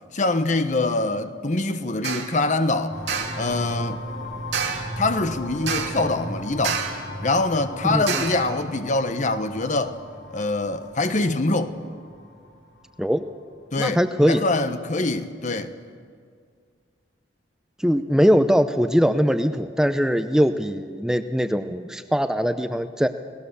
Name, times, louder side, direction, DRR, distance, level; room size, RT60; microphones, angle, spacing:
voice 1, 0.1-3.0 3.3-4.0 5.0-6.8 7.2-10.0 10.3-11.7 13.7-14.0 14.2-15.7, left 2 dB, 45° left, 1.1 m, -24 dB
sound 1, 2.0-2.4 3.1-3.5 4.5-5.0 5.7-6.1 6.6-7.1 8.1-8.5, right 6 dB, 70° right, 2.4 m, -28 dB
sound 2, 2.9-13.4, left 1 dB, 70° left, 5.1 m, -36 dB
voice 2, 7.8-8.2 13.0-13.2 13.8-14.4 17.8-23.1, equal, 5° right, 0.6 m, -21 dB
30.0 x 18.0 x 6.9 m
head